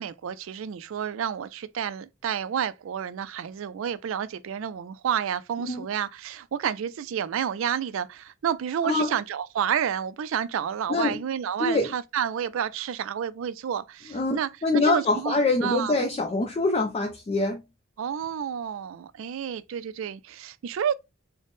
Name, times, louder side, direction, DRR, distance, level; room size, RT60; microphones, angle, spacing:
voice 1, 0.0-14.5 14.8-15.4 15.6-15.9 18.0-20.9, right 8 dB, 70° right, 0.3 m, -30 dB
voice 2, 8.8-9.2 10.9-11.2 11.6-11.9 14.1-17.6, left 3 dB, 30° left, 0.3 m, -25 dB
3.9 x 2.0 x 3.4 m
head